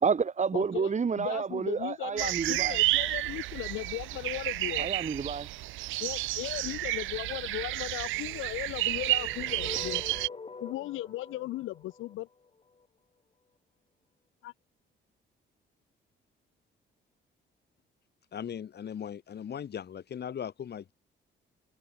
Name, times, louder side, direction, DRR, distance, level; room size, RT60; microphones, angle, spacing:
voice 1, 0.0-2.8 4.8-5.5, right 6 dB, 35° right, 2.4 m, -29 dB
voice 2, 0.5-4.9 6.0-10.0 10.6-12.3 14.4-14.5, left 16 dB, 85° left, 0.9 m, -37 dB
sound 1, 2.2-10.3, right 18 dB, 85° right, 0.4 m, -31 dB
sound 2, 8.8-12.9, left 4 dB, 30° left, 3.9 m, -44 dB
voice 3, 18.3-20.9, left 8 dB, 55° left, 4.8 m, -38 dB
cardioid pair, 90°, 20 cm